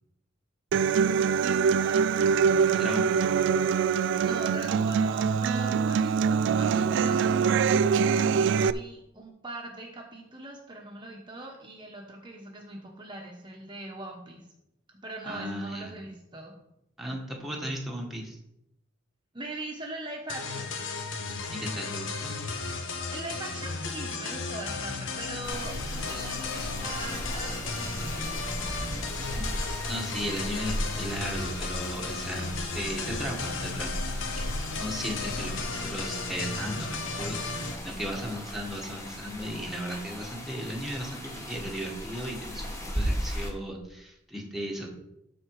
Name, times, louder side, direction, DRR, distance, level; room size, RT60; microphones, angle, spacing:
Human voice / Acoustic guitar, 0.7-8.7, right 6 dB, 65° right, 0.3 m, -24 dB
voice 1, 1.8-2.2 4.2-14.4 15.0-16.5 19.3-20.8 23.1-28.7, right 2 dB, 25° right, 0 dB, 1.2 m, -41 dB
voice 2, 2.7-3.2 15.2-15.9 17.0-18.4 21.5-22.3 29.3-34.1 34.4-34.5 34.8-44.9, equal, ahead, -2 dB, 1.6 m, -36 dB
sound 1, 20.3-37.8, left 4 dB, 75° left, 1.1 m, -35 dB
sound 2, 25.4-43.5, equal, 15° left, 1.6 m, -37 dB
13.0 x 4.4 x 4.8 m, 0.84 s
head